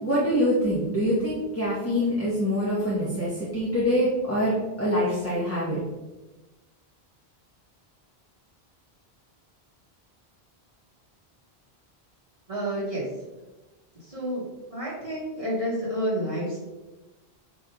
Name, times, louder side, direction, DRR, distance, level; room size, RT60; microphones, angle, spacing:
voice 1, 0.0-5.8, equal, 15° left, -8 dB, 1.7 m, -25 dB
voice 2, 12.5-13.0 14.0-14.4 14.7-16.6, equal, 35° right, -7 dB, 2.7 m, -29 dB
8.7 x 4.0 x 3.9 m, 1.1 s
omnidirectional pair, 1.1 m